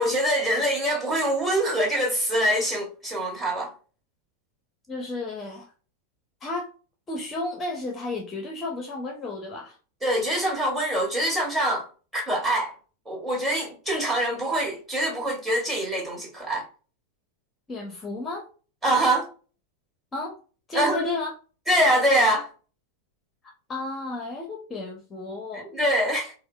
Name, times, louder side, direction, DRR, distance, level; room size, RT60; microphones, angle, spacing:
voice 1, 0.0-3.7 10.0-11.9 12.1-12.7 13.0-16.6 18.8-19.3 20.7-21.1 21.7-22.5 25.7-26.3, right 1 dB, 10° right, 1.5 m, -24 dB
voice 2, 4.9-5.7 6.4-6.7 7.1-9.8 17.7-18.5 20.1-20.4 20.7-21.3 23.4-25.7, left 2 dB, 20° left, 0.7 m, -33 dB
4.3 x 2.0 x 2.3 m
figure-of-eight pair, 90°, 0 cm